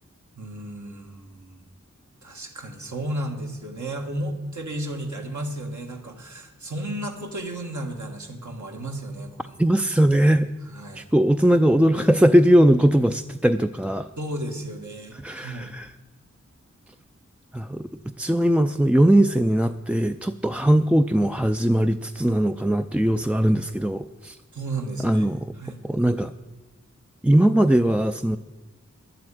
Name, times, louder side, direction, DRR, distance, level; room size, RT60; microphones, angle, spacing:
voice 1, 0.4-1.6 2.2-9.6 10.6-11.0 14.2-15.7 24.5-25.8, right 1 dB, 75° right, 2 dB, 1.8 m, -33 dB
voice 2, 9.6-10.5 11.0-14.1 15.2-15.9 17.5-17.9 18.2-24.4 25.0-25.4 25.8-26.3 27.2-28.4, right 1 dB, 5° right, 7 dB, 0.3 m, -20 dB
11.5 x 7.8 x 9.1 m, 1.2 s
wide cardioid pair, 70°, 30 cm